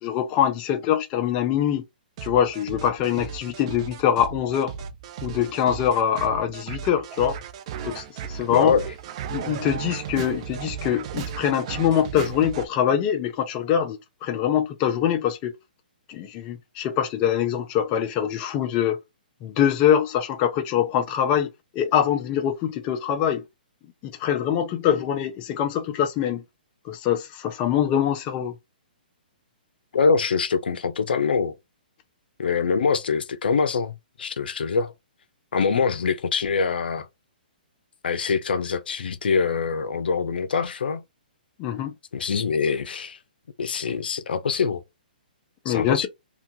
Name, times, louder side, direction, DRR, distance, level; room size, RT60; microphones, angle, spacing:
voice 1, 0.0-1.8 2.2-4.7 5.2-7.4 7.8-8.7 9.3-15.5 16.1-19.0 19.4-21.5 21.7-23.4 24.0-26.4 26.8-28.5 41.6-41.9 45.6-46.1, left 9 dB, 25° left, 0.5 m, -24 dB
sound 1, 2.2-12.7, right 8 dB, 40° right, 0.4 m, -35 dB
voice 2, 8.5-8.8 29.9-31.6 32.4-34.9 35.5-37.1 38.0-41.0 42.1-43.2 43.6-44.8 45.7-46.1, left 5 dB, 80° left, 0.6 m, -24 dB
2.9 x 2.2 x 2.6 m
hypercardioid pair, 150°, 5 cm